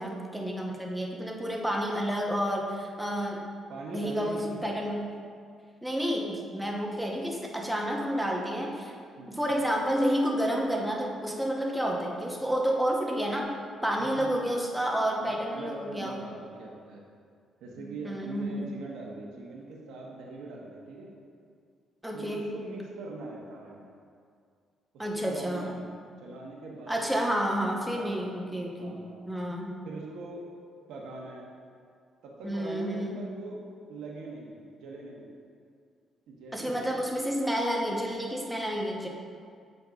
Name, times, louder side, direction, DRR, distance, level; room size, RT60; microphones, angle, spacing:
voice 1, 0.0-3.4 3.9-5.1 5.8-8.9 9.3-13.5 13.8-16.2 17.8-18.7 22.0-22.5 25.0-25.7 26.9-29.7 32.4-33.2 36.5-39.1, equal, 5° right, -1 dB, 0.8 m, -30 dB
voice 2, 3.7-4.6 9.2-9.5 14.0-14.4 15.2-17.0 17.6-21.1 22.1-23.9 24.9-25.8 26.2-27.1 27.9-28.2 28.8-29.2 29.8-30.4 30.9-31.5 32.2-33.6 33.9-35.3 36.3-37.0, right 2 dB, 85° right, -2 dB, 0.8 m, -42 dB
7.8 x 5.2 x 2.4 m, 2.2 s
cardioid pair, 90°, 0 cm